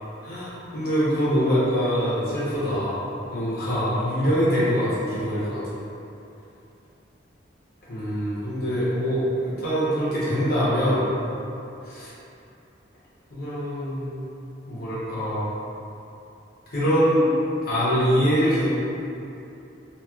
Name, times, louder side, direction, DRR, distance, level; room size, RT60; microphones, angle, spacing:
voice 1, 0.2-3.0 3.3-5.6 7.9-11.1 11.8-12.1 13.3-14.3 14.7-15.5 16.7-17.3 17.6-18.7, equal, 55° left, -11 dB, 0.8 m, -24 dB
2.9 x 2.8 x 2.3 m, 2.8 s
head